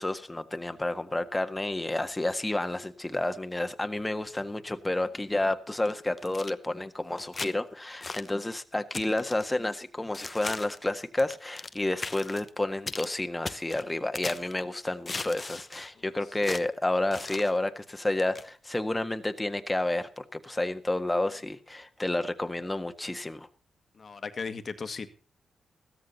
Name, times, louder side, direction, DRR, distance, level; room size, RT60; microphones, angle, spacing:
voice 1, 0.0-23.5, left 2 dB, 15° left, 1.5 m, -30 dB
wood-impacts-breaking-stretching, 5.9-6.5 7.2-7.5 8.0-8.3 8.9-9.5 10.1-10.8 11.2-11.8 12.0-12.5 12.9-13.1 13.5-14.5 15.1-15.9 16.4-16.7 17.1-17.5 18.2-18.5, left 3 dB, 35° left, 0.9 m, -38 dB
voice 2, 23.9-25.1, left 5 dB, 55° left, 1.7 m, -36 dB
15.0 x 14.0 x 4.2 m
supercardioid pair, 55°, 0 cm